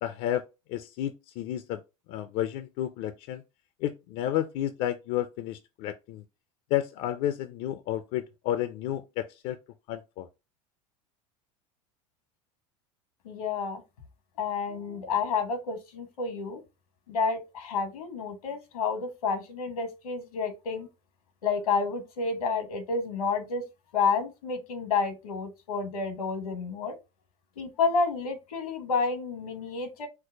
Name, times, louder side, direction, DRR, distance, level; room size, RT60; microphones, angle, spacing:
voice 1, 0.0-0.4 0.7-1.8 2.1-3.4 3.8-6.2 6.7-9.6 9.9-10.3, left 12 dB, 55° left, 0.5 m, -31 dB
voice 2, 13.2-13.8 14.4-16.6 17.1-20.9 21.4-23.6 23.9-27.0 27.6-30.1, left 4 dB, 85° left, 1.2 m, -30 dB
4.6 x 2.1 x 4.3 m
hypercardioid pair, 90°, 18 cm